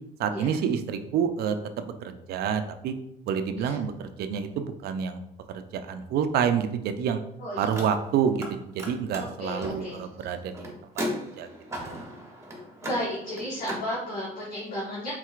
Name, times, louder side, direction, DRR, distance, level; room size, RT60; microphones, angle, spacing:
voice 1, 0.2-2.9 3.3-5.2 5.5-7.2 7.6-10.7 11.4-11.5, right 7 dB, 70° right, 9 dB, 0.5 m, -28 dB
voice 2, 7.4-7.7 9.2-10.0 12.8-15.1, equal, 60° left, -6 dB, 1.4 m, -33 dB
Car, 7.7-8.5 8.8-13.9, equal, 15° right, 1.1 m, -37 dB
4.5 x 3.9 x 2.4 m, 0.77 s
cardioid pair, 110°, 17 cm